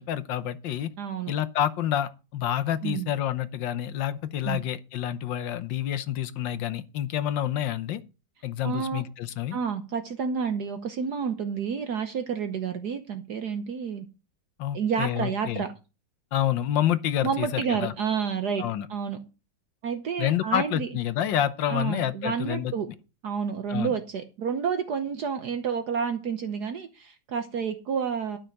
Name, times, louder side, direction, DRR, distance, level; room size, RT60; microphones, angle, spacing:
voice 1, 0.0-0.9 1.3-8.0 8.4-9.6 14.6-15.6 16.3-17.9 18.6-18.9 20.2-22.7 23.7-23.9, left 11 dB, 75° left, 1.6 m, -28 dB
voice 2, 1.0-1.3 2.8-3.1 4.4-4.6 8.6-9.0 9.5-14.1 14.7-15.7 17.2-18.6 18.9-19.2 19.8-20.9 21.7-22.9 23.2-28.4, right 6 dB, 60° right, 1.5 m, -29 dB
12.5 x 5.9 x 6.5 m
omnidirectional pair, 2.0 m